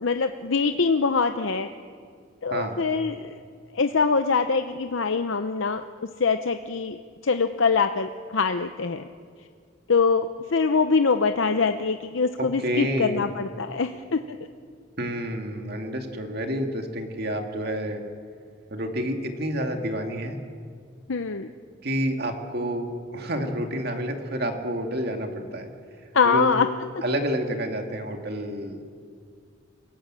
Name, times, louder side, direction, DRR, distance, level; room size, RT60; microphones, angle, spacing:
voice 1, 0.0-1.7 2.4-3.3 3.7-5.8 6.2-7.0 7.2-9.0 9.9-14.4 21.1-21.5 26.1-26.7, left 5 dB, 70° left, 8 dB, 0.7 m, -23 dB
voice 2, 12.4-13.3 15.0-18.0 18.7-20.4 21.8-25.7 26.2-26.5 27.0-28.8, equal, 50° right, 4 dB, 2.2 m, -29 dB
28.5 x 18.0 x 7.6 m, 2.1 s
head